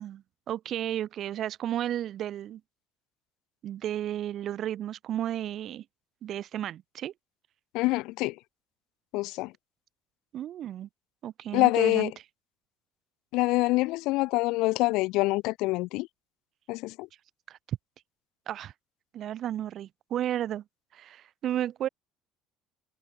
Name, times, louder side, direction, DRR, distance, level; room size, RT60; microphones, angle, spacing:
voice 1, 0.0-2.6 3.6-5.8 6.2-7.1 10.3-10.9 11.2-12.1 17.5-17.8 18.5-18.7 19.1-20.6 20.9-21.9, right 11 dB, 55° right, 0.8 m, -33 dB
voice 2, 7.7-8.3 9.1-9.5 11.5-12.1 13.3-16.1 16.7-17.1, left 21 dB, 70° left, 0.3 m, -25 dB
hypercardioid pair, 65°, 0 cm